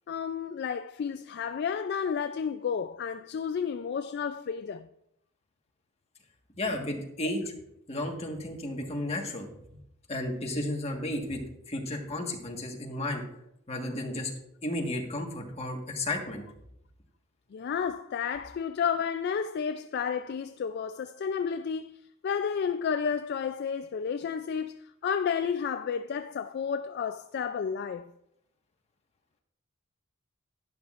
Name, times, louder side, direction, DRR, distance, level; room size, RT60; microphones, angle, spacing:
voice 1, 0.1-4.9 17.5-22.0 22.2-28.1, left 6 dB, 50° left, 0.3 m, -31 dB
voice 2, 6.6-7.4 7.9-9.5 10.1-11.4 11.7-13.2 13.7-14.3 14.6-16.4, left 1 dB, 30° left, 1.5 m, -33 dB
11.5 x 11.0 x 2.5 m
head